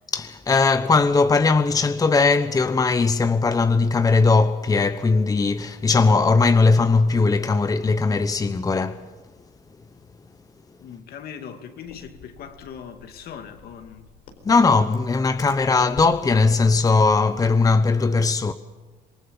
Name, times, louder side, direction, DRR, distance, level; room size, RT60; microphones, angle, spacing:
voice 1, 0.1-9.0 14.4-18.5, left 4 dB, 20° left, 0.9 m, -19 dB
voice 2, 10.8-14.1, left 7 dB, 65° left, 2.6 m, -40 dB
sound 1, 11.8-17.1, left 6 dB, 85° left, 4.5 m, -47 dB
26.5 x 19.5 x 7.3 m
cardioid pair, 110°, 17 cm